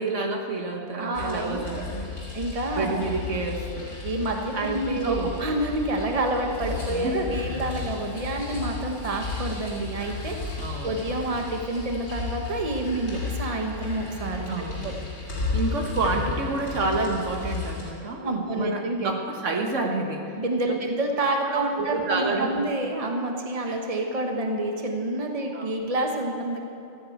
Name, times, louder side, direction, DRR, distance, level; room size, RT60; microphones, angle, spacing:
voice 1, 0.0-2.2 2.8-3.9 4.5-5.3 6.9-7.2 10.6-11.0 14.5-14.9 15.5-20.4 20.7-20.8 21.3-22.6 23.7-23.8 25.5-25.7, right 3 dB, 80° right, 2 dB, 1.8 m, -29 dB
voice 2, 0.9-1.8 2.3-3.1 4.0-14.5 14.8-14.9 18.2-19.1 20.4-26.6, right 1 dB, 30° right, 2 dB, 1.3 m, -28 dB
sound 1, 1.1-17.9, left 4 dB, 65° left, 3.3 m, -34 dB
14.5 x 9.5 x 7.8 m, 2.6 s
omnidirectional pair, 1.2 m